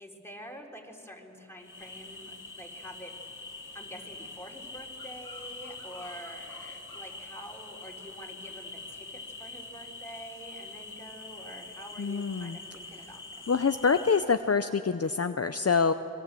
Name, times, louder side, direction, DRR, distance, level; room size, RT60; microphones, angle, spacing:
voice 1, 0.0-3.2 3.7-13.5, equal, 10° left, -1 dB, 4.1 m, -47 dB
sound 1, 1.6-14.2, left 3 dB, 85° left, 2.2 m, -44 dB
voice 2, 12.0-12.6 13.5-15.9, left 5 dB, 50° left, 9 dB, 0.7 m, -26 dB
26.0 x 22.5 x 7.6 m, 2.9 s
wide cardioid pair, 40°, 31 cm